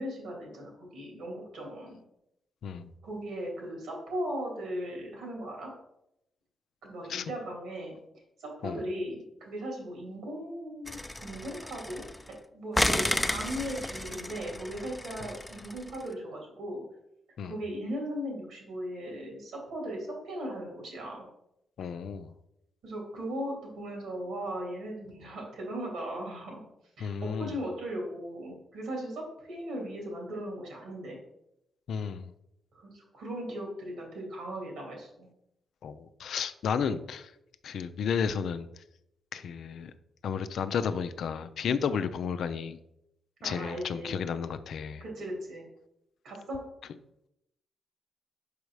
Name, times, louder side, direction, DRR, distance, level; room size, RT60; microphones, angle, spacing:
voice 1, 0.0-2.0 3.0-5.7 6.8-7.9 8.4-16.8 17.4-21.2 22.8-26.6 27.0-31.2 32.7-35.3 41.6-41.8 43.4-44.2 45.0-45.7 46.2-46.6, equal, 80° right, -1 dB, 2.7 m, -38 dB
voice 2, 2.6-2.9 7.1-7.2 8.6-8.8 17.4-17.5 21.8-22.3 27.0-27.5 31.9-32.3 35.8-37.3 37.6-38.7 39.3-39.9 40.2-42.8 43.4-45.0, left 6 dB, 75° left, 11 dB, 0.4 m, -32 dB
sound 1, 10.9-12.3 12.7-16.0, left 1 dB, 10° left, 0.6 m, -32 dB
5.2 x 4.9 x 4.7 m, 0.81 s
supercardioid pair, 55°, 0 cm